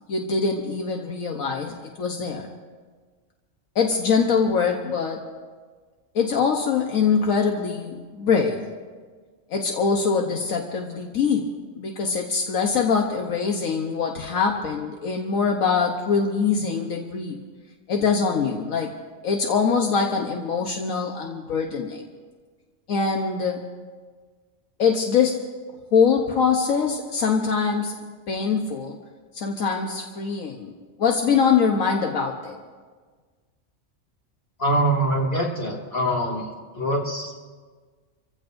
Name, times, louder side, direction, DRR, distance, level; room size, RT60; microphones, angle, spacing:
voice 1, 0.1-2.5 3.7-5.2 6.1-8.6 9.5-11.5 11.7-17.4 17.9-18.9 19.2-22.0 22.9-23.6 24.8-25.4 25.9-27.9 28.3-29.0 29.3-30.7 31.0-32.6, left 5 dB, 80° left, 1 dB, 1.4 m, -23 dB
voice 2, 34.6-36.5 36.7-37.5, right 1 dB, 45° left, -2 dB, 2.8 m, -24 dB
27.5 x 15.5 x 2.6 m, 1.5 s
omnidirectional pair, 1.4 m